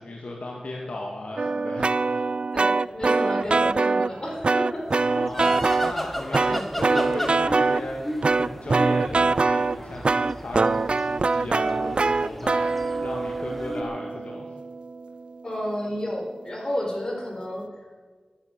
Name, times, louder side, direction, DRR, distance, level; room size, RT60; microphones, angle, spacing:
voice 1, 0.0-2.3 4.9-14.5, left 2 dB, 65° left, -1 dB, 1.9 m, -36 dB
sound 1, 1.4-4.2 4.4-5.9 6.3-7.8 8.2-15.2, right 3 dB, 50° right, 0.3 m, -23 dB
voice 2, 2.5-4.9 6.5-6.6 15.4-17.7, left 1 dB, 35° left, -1 dB, 4.6 m, -31 dB
sound 2, 5.1-13.8, equal, 10° left, 1.3 m, -34 dB
13.0 x 9.8 x 8.1 m, 1.4 s
wide cardioid pair, 90°, 2 cm